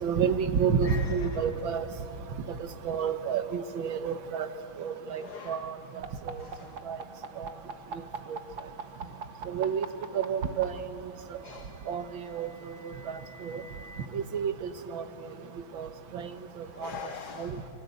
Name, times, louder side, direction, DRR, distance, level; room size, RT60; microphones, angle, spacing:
voice 1, 0.0-1.9 2.6-4.5 4.8-5.8 6.3-6.4 6.9-7.0 7.4-7.5 8.3-8.4 9.5-9.9 10.1-10.7 11.9-12.5 13.4-13.6 14.1-15.0 15.7-16.3 16.6-16.9 17.4-17.6, right 7 dB, 70° right, 8 dB, 1.9 m, -30 dB
voice 2, 0.8-1.4 5.1-5.7 6.4-6.8 11.4-11.8 16.7-17.7, left 6 dB, 55° left, 7 dB, 1.4 m, -43 dB
sound 1, 6.0-10.6 11.8-14.1, right 5 dB, 50° right, 1.8 m, -41 dB
29.0 x 25.0 x 8.3 m, 2.9 s
omnidirectional pair, 2.3 m